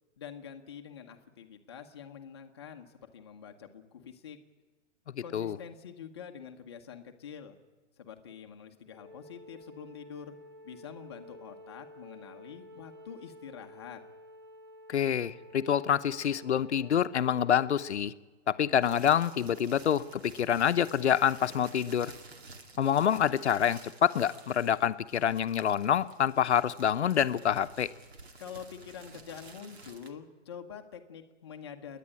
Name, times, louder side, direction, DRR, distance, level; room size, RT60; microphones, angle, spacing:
voice 1, 0.2-4.4 5.2-7.6 8.0-10.4 10.6-14.0 28.4-32.0, left 7 dB, 20° left, 4 dB, 1.0 m, -46 dB
voice 2, 5.2-5.6 14.9-18.1 18.5-22.1 22.8-27.9, left 9 dB, 65° left, 11 dB, 0.9 m, -27 dB
Wind instrument woodwind instrument, 8.9-18.1, equal, 20° right, 0.6 m, -52 dB
sound 1, 18.8-30.1, right 3 dB, 60° right, 2.3 m, -52 dB
28.5 x 10.0 x 9.8 m, 1.3 s
hypercardioid pair, 180°, 37 cm